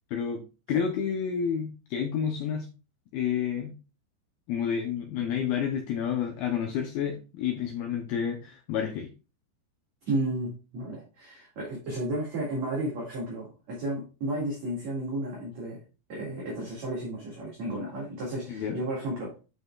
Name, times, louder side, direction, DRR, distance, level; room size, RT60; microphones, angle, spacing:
voice 1, 0.1-0.4 0.7-2.7 3.1-3.7 4.5-9.1 18.5-18.8, left 7 dB, 80° left, 5 dB, 2.2 m, -29 dB
voice 2, 10.1-15.8 16.1-19.3, right 1 dB, 50° right, -3 dB, 2.7 m, -33 dB
9.6 x 5.5 x 2.3 m, 0.32 s
omnidirectional pair, 5.1 m